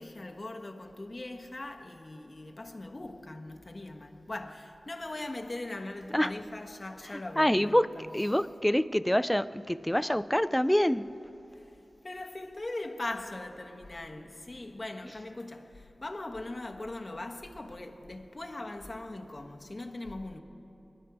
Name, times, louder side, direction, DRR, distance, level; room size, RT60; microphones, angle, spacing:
voice 1, 0.0-8.4 11.5-11.8 12.0-20.4, left 2 dB, 40° left, 1.3 m, -40 dB
voice 2, 7.4-7.9 8.1-11.1, equal, 10° left, 0.4 m, -26 dB
26.5 x 11.0 x 4.9 m
cardioid pair, 50°, 0 cm